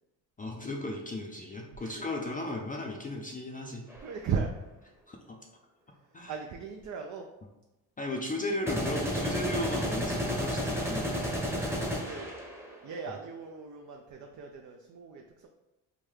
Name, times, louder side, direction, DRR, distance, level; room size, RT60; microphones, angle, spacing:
voice 1, 0.4-3.8 5.1-5.4 6.1-6.3 8.0-11.4, left 1 dB, 20° left, 1 dB, 0.5 m, -36 dB
sound 1, 3.9-4.1 8.7-12.8, equal, 5° right, 0.9 m, -32 dB
voice 2, 4.0-4.5 6.0-7.3 11.5-12.3 12.8-15.5, right 6 dB, 45° right, 3 dB, 0.5 m, -37 dB
3.7 x 2.1 x 3.2 m, 1.0 s
supercardioid pair, 65°, 44 cm